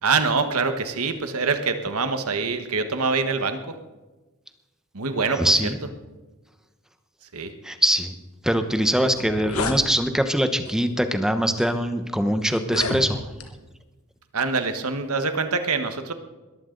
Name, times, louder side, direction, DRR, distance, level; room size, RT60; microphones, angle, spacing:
voice 1, 0.0-3.8 4.9-5.6 7.3-7.5 14.3-16.1, right 4 dB, 75° right, 8 dB, 1.3 m, -25 dB
voice 2, 5.4-5.8 7.6-8.1 8.4-13.3, equal, 5° right, 8 dB, 0.9 m, -22 dB
sound 1, 8.7-8.8 9.1-9.8 10.7-10.9 11.6-11.7 12.6-13.5, left 3 dB, 70° left, 1.5 m, -30 dB
21.0 x 14.5 x 3.9 m, 1.2 s
head